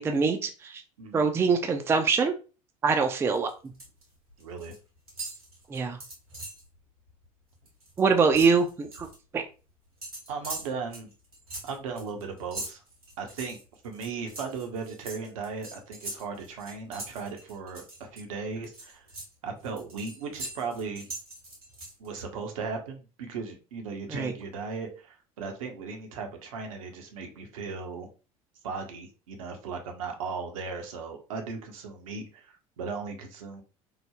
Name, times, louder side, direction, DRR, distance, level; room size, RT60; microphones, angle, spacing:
voice 1, 0.0-0.8 1.1-2.3 2.8-3.5 5.7-6.0 8.0-9.1 9.3-9.4 24.1-24.3, right 5 dB, 15° right, 5 dB, 0.3 m, -24 dB
sound 1, 3.3-4.0 4.3-4.8 5.1-6.7 7.1-7.2 7.5-9.2 10.0-18.2 18.6-22.2, right 2 dB, 85° right, 1.4 m, -42 dB
voice 2, 4.4-4.7 10.3-11.1 11.6-12.8 13.2-13.6 13.8-19.1 19.4-21.1 22.0-28.1 28.6-33.6, right 5 dB, 65° right, 3 dB, 0.6 m, -37 dB
3.2 x 2.0 x 2.2 m, 0.33 s
figure-of-eight pair, 70°, 19 cm